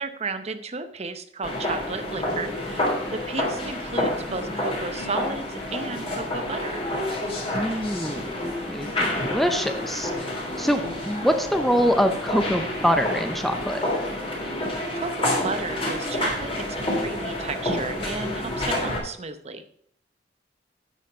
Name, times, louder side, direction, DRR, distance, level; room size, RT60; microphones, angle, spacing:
voice 1, 0.0-6.8 14.5-14.6 14.9-19.6, right 3 dB, 35° right, 10 dB, 0.7 m, -33 dB
sound 1, 1.4-19.0, left 1 dB, 30° left, 3.3 m, -29 dB
voice 2, 7.5-10.3 10.6-13.8, equal, ahead, 7 dB, 0.6 m, -25 dB
9.2 x 6.3 x 5.4 m, 0.64 s
head